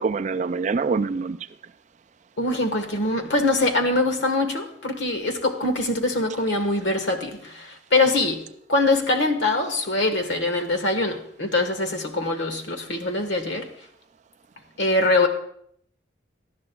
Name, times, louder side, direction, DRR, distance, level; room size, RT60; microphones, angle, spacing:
voice 1, 0.0-1.4, right 4 dB, 35° right, 12 dB, 0.3 m, -25 dB
voice 2, 2.4-8.4 8.7-13.7 14.8-15.3, left 2 dB, 70° left, 6 dB, 1.4 m, -23 dB
17.5 x 12.0 x 2.3 m, 0.68 s
head